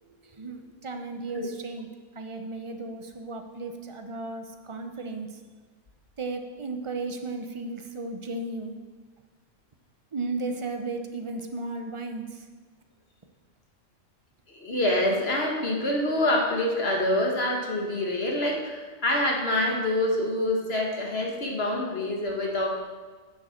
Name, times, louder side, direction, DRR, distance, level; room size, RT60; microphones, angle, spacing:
voice 1, 0.2-1.9 2.1-5.3 6.2-8.8 10.1-12.4, right 3 dB, 25° right, 5 dB, 0.8 m, -35 dB
voice 2, 14.5-22.7, left 1 dB, 45° left, 0 dB, 1.9 m, -26 dB
10.5 x 7.0 x 6.5 m, 1.4 s
omnidirectional pair, 1.5 m